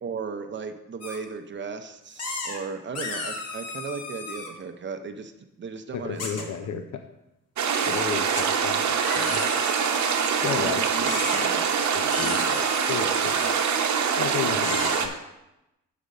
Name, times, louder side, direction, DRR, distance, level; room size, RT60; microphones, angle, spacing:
voice 1, 0.0-5.3 5.6-6.9 10.6-11.7 12.2-12.5, right 5 dB, 40° right, 7 dB, 0.6 m, -36 dB
sound 1, 1.0-1.2 2.2-2.6 2.9-4.5 6.2-6.4 7.7-8.0 8.4-8.5 8.9-10.4 11.0-11.5 12.1-13.8 14.6-15.0, left 3 dB, 55° left, 1.4 m, -34 dB
voice 2, 5.9-6.8 7.9-9.4 10.4-11.5 11.9-13.6 14.2-15.1, left 8 dB, 75° left, 7 dB, 0.6 m, -33 dB
sound 2, 7.6-15.1, right 6 dB, 70° right, 0.8 m, -24 dB
6.8 x 5.0 x 6.3 m, 0.92 s
wide cardioid pair, 170°, 30 cm